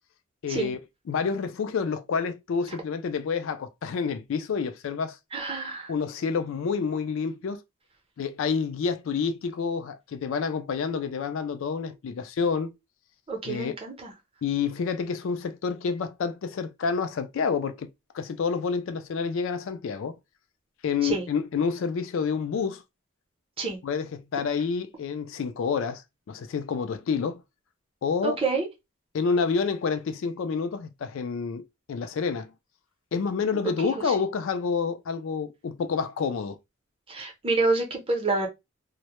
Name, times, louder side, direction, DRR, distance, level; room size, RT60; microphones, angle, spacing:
voice 1, 0.4-0.8 1.1-5.2 5.9-7.6 8.2-12.7 13.4-13.7 14.4-17.9 18.1-20.2 20.8-22.8 23.8-26.0 26.3-27.4 28.0-28.4 29.1-31.6 31.9-32.5 33.1-36.6, left 5 dB, 60° left, 0.3 m, -28 dB
voice 2, 5.3-5.9 13.3-14.1 21.0-21.2 23.6-23.8 28.2-28.7 33.6-34.1 37.1-38.5, right 3 dB, 25° right, 0.7 m, -28 dB
2.1 x 2.1 x 2.9 m
head